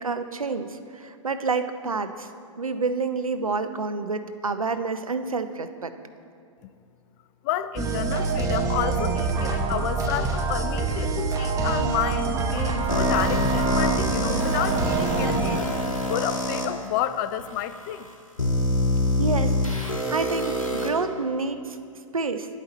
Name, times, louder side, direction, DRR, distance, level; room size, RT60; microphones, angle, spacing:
voice 1, 0.0-2.3 2.6-5.9 19.2-21.8 22.1-22.5, right 4 dB, 85° right, 9 dB, 0.6 m, -28 dB
voice 2, 7.4-15.6 16.1-18.1, left 12 dB, 30° left, 13 dB, 0.4 m, -30 dB
sound 1, 7.8-15.6, right 4 dB, 20° right, 0.8 m, -26 dB
sound 2, 12.9-16.6 17.4-17.5 18.4-20.9, left 1 dB, 80° left, 1.4 m, -25 dB
10.0 x 8.2 x 4.2 m, 2.4 s
figure-of-eight pair, 110°, 17 cm